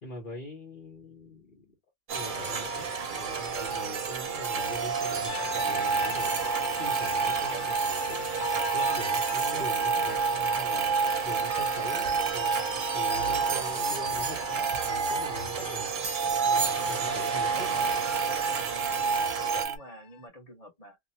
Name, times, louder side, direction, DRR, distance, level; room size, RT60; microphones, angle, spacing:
voice 1, 0.0-1.7 2.1-2.9 3.2-6.4 6.8-15.9 16.2-17.7, left 1 dB, 50° left, 1.2 m, -43 dB
sound 1, 2.1-19.6, right 5 dB, 55° right, 0.8 m, -33 dB
sound 2, 3.6-3.9 4.2-5.1 5.5-15.9 16.1-19.8, right 5 dB, 80° right, 0.9 m, -30 dB
sound 3, 5.3-20.2, left 8 dB, 90° left, 0.9 m, -42 dB
voice 2, 18.7-19.3 19.6-21.0, right 1 dB, 35° left, 1.4 m, -49 dB
2.8 x 2.1 x 2.8 m
omnidirectional pair, 1.1 m